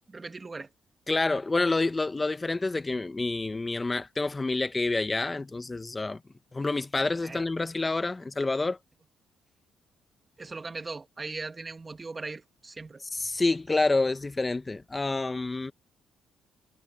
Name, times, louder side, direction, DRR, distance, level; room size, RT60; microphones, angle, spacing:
voice 1, 0.1-0.7 7.2-7.4 10.4-13.0, right 3 dB, 25° right, 1.5 m, -39 dB
voice 2, 1.1-6.2 6.5-8.8 13.1-15.7, left 3 dB, 20° left, 1.2 m, -28 dB
cardioid pair, 90°, 0 cm